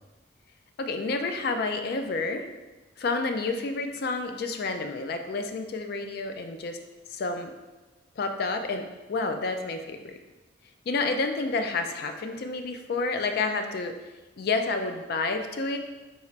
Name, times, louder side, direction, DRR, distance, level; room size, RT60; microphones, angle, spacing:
voice 1, 0.8-2.5 3.0-6.8 7.1-7.5 8.2-10.2 10.9-14.0 14.4-15.8, left 3 dB, 50° left, 6 dB, 0.3 m, -29 dB
4.1 x 2.4 x 4.4 m, 1.2 s
head